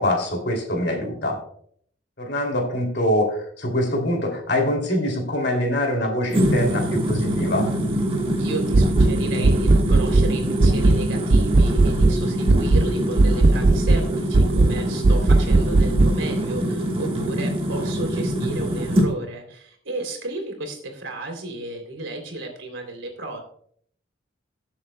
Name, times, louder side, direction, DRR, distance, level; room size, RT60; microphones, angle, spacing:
voice 1, 0.0-1.4 2.2-7.7 15.2-15.3, left 1 dB, 60° left, 2 dB, 2.8 m, -24 dB
sound 1, 6.3-19.1, equal, 30° right, 1.4 m, -24 dB
voice 2, 8.3-23.4, right 2 dB, 90° right, 3 dB, 3.1 m, -33 dB
sound 2, 8.7-9.1 9.4-10.3 10.6-11.0 11.3-12.2 12.5-12.9 13.2-14.0 14.3-14.7 15.0-16.1, right 2 dB, 50° right, 0.4 m, -16 dB
20.0 x 7.3 x 2.2 m, 0.62 s
head